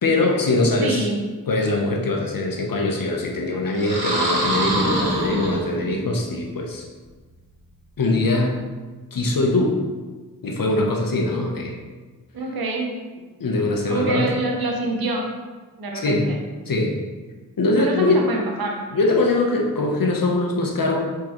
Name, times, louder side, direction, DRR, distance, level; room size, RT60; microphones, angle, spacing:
voice 1, 0.0-1.1 1.5-6.9 8.0-8.5 9.1-9.8 10.4-11.7 13.4-14.3 15.9-16.3 16.7-17.0 17.6-18.2 18.9-21.1, left 2 dB, 60° left, 0 dB, 0.9 m, -22 dB
voice 2, 0.8-1.2 12.3-12.9 13.9-15.3 15.8-16.4 17.8-18.8, right 2 dB, 65° right, 1 dB, 0.9 m, -26 dB
sound 1, 3.7-6.1, right 1 dB, 85° right, 1.4 m, -24 dB
4.5 x 3.7 x 3.1 m, 1.3 s
cardioid pair, 45°, 39 cm